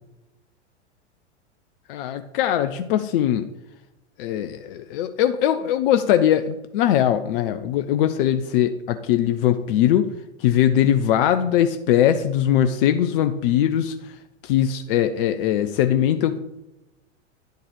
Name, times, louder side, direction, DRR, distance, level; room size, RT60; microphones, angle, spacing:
voice 1, 1.9-3.5 4.2-10.1 10.4-13.9 14.4-16.4, left 10 dB, 50° left, 9 dB, 0.6 m, -21 dB
10.0 x 4.6 x 4.7 m, 0.94 s
figure-of-eight pair, 95°, 35 cm